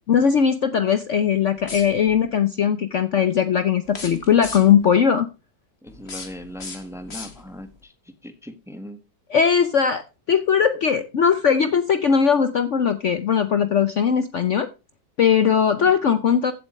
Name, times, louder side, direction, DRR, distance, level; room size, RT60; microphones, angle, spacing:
voice 1, 0.1-5.3 9.3-10.0 10.3-14.7 15.2-16.5, left 7 dB, 55° left, 11 dB, 1.0 m, -19 dB
sound 1, 1.6-2.3 3.8-4.9 5.9-7.7, left 3 dB, 40° left, 2.2 m, -38 dB
voice 2, 5.8-9.0 15.8-15.9, left 1 dB, ahead, 9 dB, 1.2 m, -39 dB
15.0 x 8.2 x 3.2 m, 0.30 s
omnidirectional pair, 1.8 m